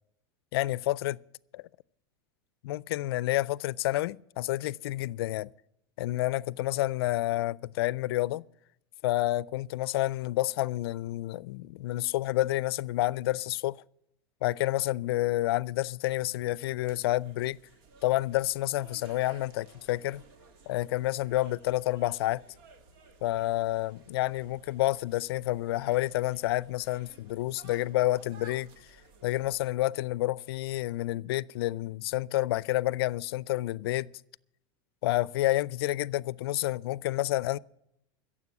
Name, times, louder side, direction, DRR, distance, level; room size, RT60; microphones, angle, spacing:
voice 1, 0.5-1.2 1.5-1.6 2.6-5.5 6.0-8.4 9.0-13.8 14.4-17.6 18.0-20.2 20.7-22.4 23.2-28.7 29.2-34.1 35.0-37.6, left 16 dB, 80° left, 0.4 m, -29 dB
sound 1, 16.8-29.7, right 4 dB, 70° right, 2.0 m, -56 dB
15.5 x 7.6 x 8.2 m
supercardioid pair, 110°, 13 cm